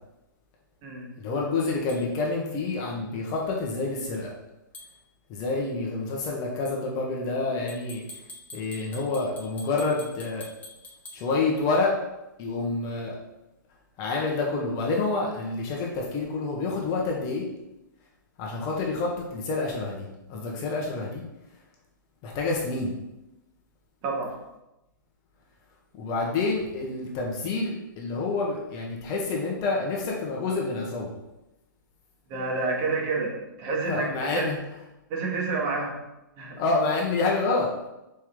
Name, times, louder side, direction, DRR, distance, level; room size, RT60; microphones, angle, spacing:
voice 1, 1.2-4.3 5.3-8.0 8.5-10.4 11.1-11.9 12.4-13.2 14.0-17.4 18.4-21.2 22.2-22.9 26.0-31.1 33.9-34.6 36.6-37.7, left 3 dB, 35° left, -2 dB, 1.3 m, -28 dB
sound 1, 1.9-2.0 4.7-4.9 7.7-11.2, left 1 dB, 15° left, 1.4 m, -45 dB
voice 2, 24.0-24.3 32.3-33.3 33.6-34.4 35.1-35.9 36.4-36.6, right 3 dB, 40° right, -2 dB, 1.9 m, -29 dB
6.2 x 4.6 x 3.8 m, 0.94 s
hypercardioid pair, 125°, 11 cm